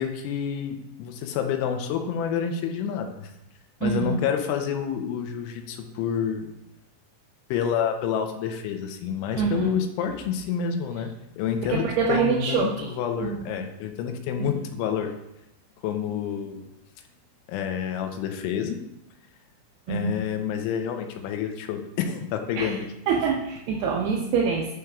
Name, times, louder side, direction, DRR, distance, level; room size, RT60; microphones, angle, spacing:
voice 1, 0.0-3.3 3.8-6.5 7.5-15.1 15.8-16.7 17.5-18.8 19.9-22.9, left 8 dB, 85° left, 6 dB, 3.0 m, -28 dB
voice 2, 3.8-4.2 9.4-9.7 11.7-12.9 13.2-13.5 14.4-14.5 19.9-20.2 22.6-22.8 23.1-24.7, right 5 dB, 85° right, -2 dB, 2.3 m, -25 dB
11.0 x 5.0 x 2.3 m, 0.85 s
omnidirectional pair, 5.5 m